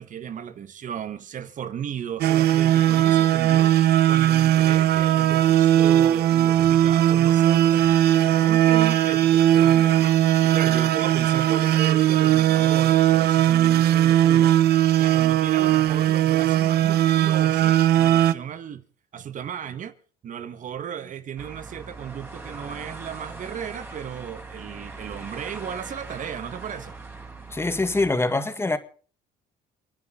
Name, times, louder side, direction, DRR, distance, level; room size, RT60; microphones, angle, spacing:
voice 1, 0.0-3.8 4.1-18.8 19.1-19.9 20.2-27.0, right 8 dB, 50° right, 1.6 m, -35 dB
sound 1, 2.2-18.3, right 12 dB, 70° right, 1.1 m, -19 dB
sound 2, 21.4-28.1, right 3 dB, 15° right, 4.9 m, -40 dB
voice 2, 27.5-28.8, left 2 dB, 15° left, 1.9 m, -24 dB
30.0 x 9.9 x 3.9 m
cardioid pair, 110°, 17 cm